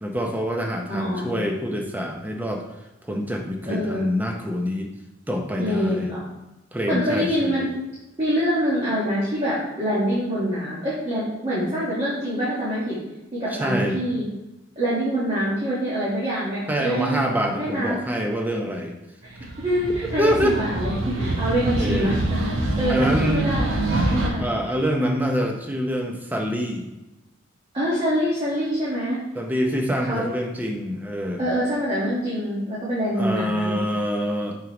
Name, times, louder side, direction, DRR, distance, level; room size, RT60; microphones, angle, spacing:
voice 1, 0.0-2.6 3.0-4.9 5.3-6.1 6.7-7.5 13.5-14.0 16.7-19.0 20.2-20.6 21.8-22.1 22.9-23.5 24.0-24.1 24.4-26.9 29.3-31.4 33.2-34.5, equal, 10° right, 2 dB, 0.7 m, -25 dB
voice 2, 0.9-1.4 3.7-4.0 5.6-6.2 6.9-7.6 8.2-13.0 13.3-14.3 14.7-17.2 17.6-18.0 19.2-22.1 22.4-24.4 27.7-29.2 30.1-30.3 31.4-33.8, equal, 25° right, -9 dB, 1.5 m, -25 dB
sound 1, 19.3-24.3, right 2 dB, 80° right, 1.0 m, -25 dB
6.2 x 5.0 x 3.0 m, 0.99 s
head